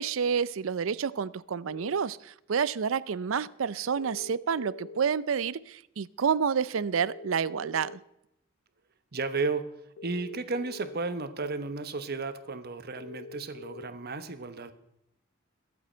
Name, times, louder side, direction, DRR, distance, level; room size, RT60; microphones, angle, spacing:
voice 1, 0.0-8.0, right 6 dB, 75° right, 0.5 m, -29 dB
sound 1, 1.6-2.0 4.0-5.0 7.0-8.0 10.0-11.0 13.0-13.9, left 4 dB, 70° left, 0.5 m, -44 dB
voice 2, 9.1-9.7 10.0-14.7, right 3 dB, 50° right, 1.1 m, -33 dB
22.5 x 7.9 x 4.5 m
head